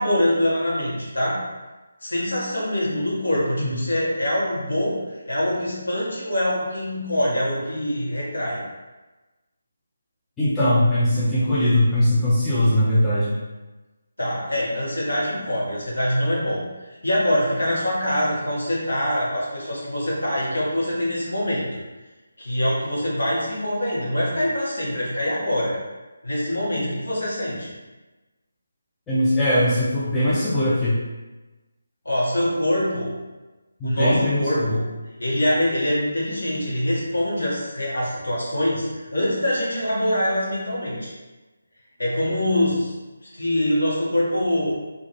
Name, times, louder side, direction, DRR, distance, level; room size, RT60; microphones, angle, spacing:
voice 1, 0.0-1.4 2.0-5.0 5.3-8.6 14.2-21.8 22.4-25.8 26.2-27.7 32.0-33.1 33.8-34.8 35.2-41.1 42.0-42.9 43.2-44.7, left 1 dB, 65° left, -6 dB, 0.9 m, -24 dB
voice 2, 10.4-13.4 29.1-31.0 33.8-34.8, left 1 dB, 10° left, -11 dB, 0.4 m, -20 dB
2.3 x 2.1 x 3.0 m, 1.2 s
figure-of-eight pair, 150°, 0 cm